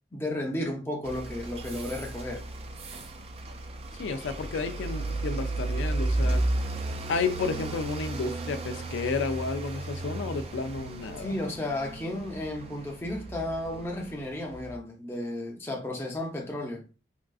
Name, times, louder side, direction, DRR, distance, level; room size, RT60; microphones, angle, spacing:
voice 1, 0.1-2.4 11.2-16.8, left 1 dB, 15° left, 0.6 m, -33 dB
sound 1, 1.0-14.8, right 2 dB, 30° right, 0.3 m, -34 dB
voice 2, 4.0-6.4 7.1-11.4, left 4 dB, 85° left, 0.4 m, -31 dB
3.6 x 2.4 x 2.3 m
head